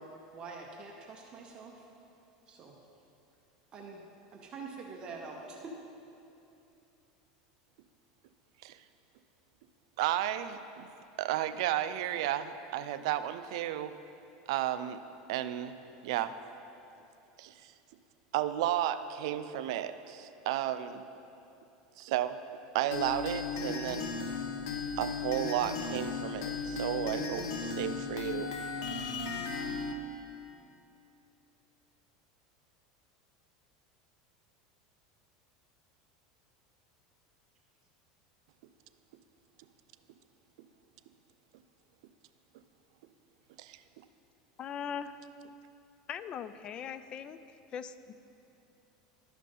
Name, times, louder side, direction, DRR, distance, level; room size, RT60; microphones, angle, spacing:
voice 1, 0.0-1.9 2.5-2.8 3.7-4.0 4.3-5.8, right 4 dB, 30° right, 1 dB, 0.7 m, -45 dB
voice 2, 10.0-10.9 11.2-13.9 14.5-15.0 15.3-16.4 17.4-17.7 18.3-21.0 22.0-22.4 22.7-24.1 25.0-28.5 43.6-43.8, right 12 dB, 75° right, 12 dB, 0.4 m, -33 dB
sound 1, 22.9-29.9, left 4 dB, 80° left, 0.8 m, -36 dB
voice 3, 44.6-45.2 46.1-47.4 47.7-48.1, left 7 dB, 30° left, 13 dB, 0.3 m, -40 dB
12.0 x 5.8 x 3.8 m, 2.8 s
supercardioid pair, 135°, 3 cm